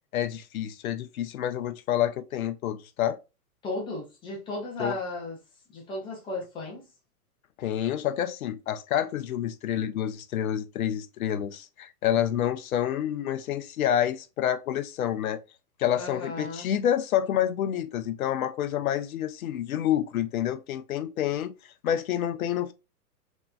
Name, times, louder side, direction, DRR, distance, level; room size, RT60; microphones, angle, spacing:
voice 1, 0.1-3.2 4.8-5.0 7.6-15.4 15.8-21.5 21.8-22.7, left 10 dB, 65° left, 0.6 m, -28 dB
voice 2, 3.6-5.4 5.7-6.9 16.0-16.7, left 2 dB, 10° left, 0.5 m, -35 dB
3.4 x 3.0 x 2.2 m
hypercardioid pair, 115°, 46 cm